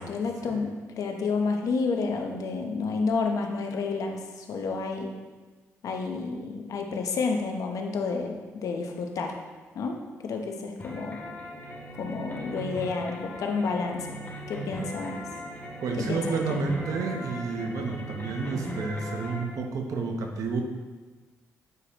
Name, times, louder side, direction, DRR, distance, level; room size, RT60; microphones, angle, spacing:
voice 1, 0.0-5.1 5.8-9.3 9.7-11.2 12.0-14.2 14.5-15.3 16.1-16.6, left 4 dB, 75° left, 3 dB, 0.9 m, -30 dB
sound 1, 10.8-19.4, equal, 35° left, 2.0 m, -38 dB
voice 2, 15.8-20.6, right 4 dB, 75° right, 3 dB, 0.9 m, -30 dB
8.1 x 4.8 x 3.0 m, 1.3 s
cardioid pair, 70°, 6 cm